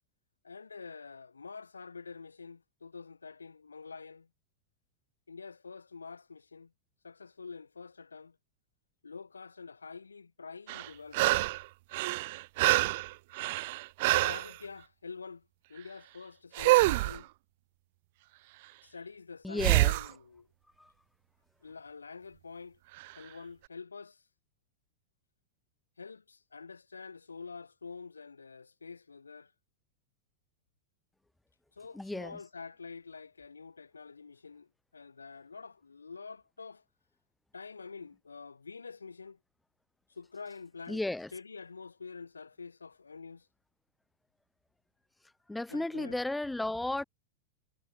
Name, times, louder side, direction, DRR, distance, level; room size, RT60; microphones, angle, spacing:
voice 1, 0.4-4.3 5.3-6.7 7.0-8.4 9.0-11.5 14.1-17.3 18.8-20.5 21.6-22.8 23.2-24.2 26.0-29.5 31.8-36.8 37.5-39.4 40.2-41.0 41.3-43.5 45.7-46.2, left 5 dB, 75° left, 7.1 m, -47 dB
sound 1, 10.7-11.6 11.9-14.5 16.5-17.2 19.6-20.1 23.0-23.1, right 20 dB, 50° right, 0.5 m, -26 dB
voice 2, 19.4-20.0 20.8-20.9 31.9-32.4 40.9-41.3 45.5-47.0, left 2 dB, 5° left, 7.7 m, -34 dB
figure-of-eight pair, 90°, 0 cm